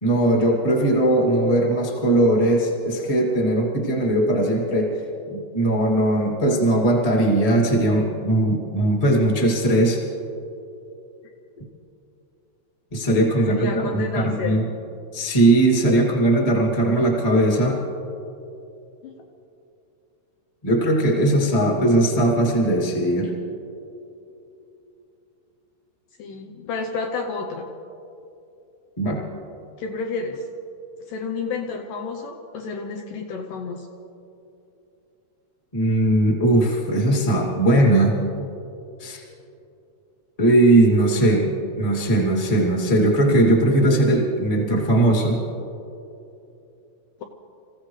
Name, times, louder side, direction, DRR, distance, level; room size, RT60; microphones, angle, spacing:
voice 1, 0.0-4.9 5.3-10.0 12.9-14.6 15.1-17.8 20.6-23.3 29.0-29.2 35.7-38.2 39.0-39.2 40.4-45.4, right 1 dB, 15° left, -2 dB, 1.2 m, -19 dB
voice 2, 13.4-14.7 19.0-19.1 26.2-27.6 29.8-30.5 31.1-33.9, left 3 dB, 75° left, 2 dB, 2.0 m, -30 dB
28.0 x 16.0 x 3.3 m, 2.8 s
omnidirectional pair, 4.9 m